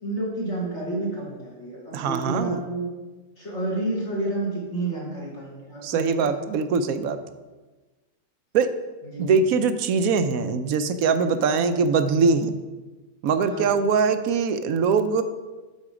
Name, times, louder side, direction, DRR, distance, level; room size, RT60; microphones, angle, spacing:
voice 1, 0.0-2.9 3.4-6.4 9.0-9.4 11.6-11.8 13.5-13.7, right 2 dB, 55° left, -6 dB, 2.3 m, -30 dB
voice 2, 1.9-2.6 5.8-7.2 8.5-8.7 9.2-12.5 13.2-15.2, right 5 dB, 85° right, 10 dB, 1.1 m, -22 dB
11.5 x 4.5 x 4.9 m, 1.2 s
omnidirectional pair, 1.4 m